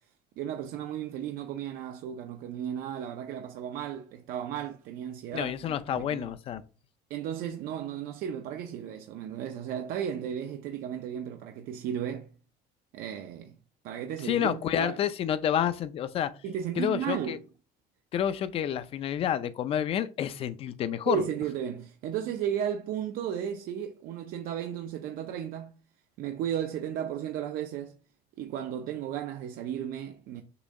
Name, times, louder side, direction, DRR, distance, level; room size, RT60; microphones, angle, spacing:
voice 1, 0.4-5.5 5.9-6.3 7.1-12.3 12.9-13.6 13.8-15.0 16.4-17.4 21.1-25.8 26.2-28.0 28.4-30.4, right 9 dB, 60° right, 0.6 m, -34 dB
voice 2, 5.3-6.6 14.2-16.3 16.8-17.4 18.1-21.2, left 10 dB, 35° left, 0.4 m, -29 dB
6.9 x 2.7 x 5.2 m
cardioid pair, 170°, 17 cm